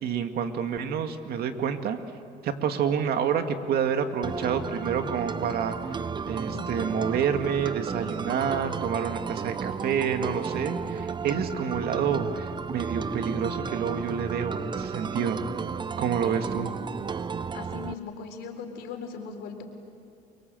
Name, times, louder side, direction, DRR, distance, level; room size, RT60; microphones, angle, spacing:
voice 1, 0.0-2.0 2.4-5.8 6.3-15.4 16.0-16.7, right 7 dB, 65° right, 7 dB, 2.1 m, -28 dB
sound 1, 4.2-17.9, right 6 dB, 25° right, 0.7 m, -33 dB
voice 2, 6.5-7.3 16.2-16.5 17.5-19.6, left 5 dB, 80° left, 4 dB, 4.1 m, -39 dB
30.0 x 23.5 x 7.8 m, 2.3 s
cardioid pair, 110°, 17 cm